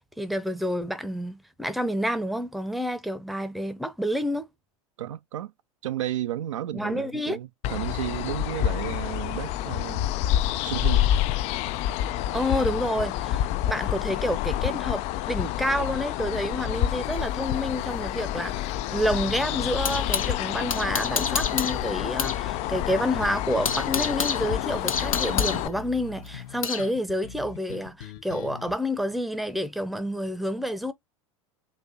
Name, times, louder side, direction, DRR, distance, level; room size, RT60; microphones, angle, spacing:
voice 1, 0.2-4.5 6.7-7.4 12.3-30.9, equal, ahead, 0.7 m, -29 dB
voice 2, 5.0-5.5 5.8-10.1 10.6-11.1, right 12 dB, 65° right, 0.5 m, -33 dB
sound 1, 7.6-25.7, left 12 dB, 40° left, 0.4 m, -28 dB
sound 2, 17.1-20.3 20.7-22.4 22.7-22.8 23.2-26.9, left 6 dB, 80° left, 0.9 m, -30 dB
sound 3, 19.1-28.7, left 8 dB, 55° left, 0.9 m, -43 dB
4.1 x 2.7 x 3.8 m
figure-of-eight pair, 85°, 17 cm